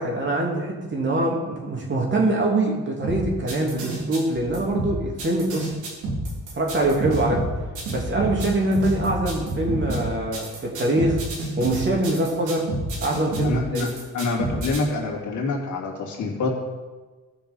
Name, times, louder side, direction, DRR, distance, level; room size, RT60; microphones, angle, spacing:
voice 1, 0.0-5.7 6.5-7.5 7.9-11.2 11.6-12.7 13.0-13.9, right 2 dB, 40° right, -1 dB, 2.8 m, -24 dB
sound 1, 3.0-14.8, right 2 dB, 90° right, 3.4 m, -30 dB
voice 2, 13.4-13.9 14.1-16.6, left 3 dB, 75° left, -2 dB, 2.6 m, -26 dB
14.5 x 5.8 x 5.4 m, 1.3 s
cardioid pair, 90°, 30 cm